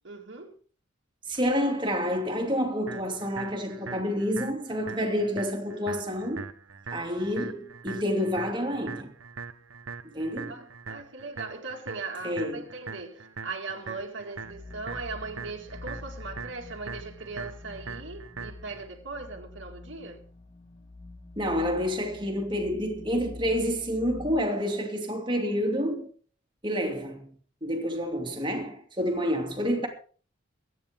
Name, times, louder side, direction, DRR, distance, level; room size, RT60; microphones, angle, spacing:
voice 1, 0.0-0.5 10.5-20.2, right 3 dB, 60° right, 2.1 m, -39 dB
voice 2, 1.3-6.5 6.9-9.1 10.1-10.5 12.2-12.6 21.4-26.1 26.6-27.3 27.6-29.9, equal, 25° right, 2.7 m, -28 dB
sound 1, 2.9-18.9, right 5 dB, 80° right, 1.0 m, -42 dB
sound 2, 14.4-24.4, left 2 dB, 35° left, 2.0 m, -46 dB
23.0 x 9.7 x 3.7 m
head